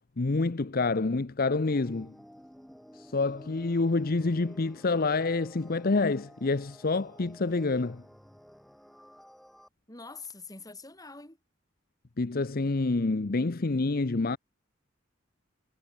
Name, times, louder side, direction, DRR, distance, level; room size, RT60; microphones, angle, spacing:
voice 1, 0.2-2.1 2.9-8.0 12.2-14.4, left 3 dB, 50° left, 0.7 m, -27 dB
sound 1, 1.7-9.7, equal, ahead, 3.0 m, -53 dB
voice 2, 9.9-11.4, left 3 dB, 20° left, 7.0 m, -45 dB
head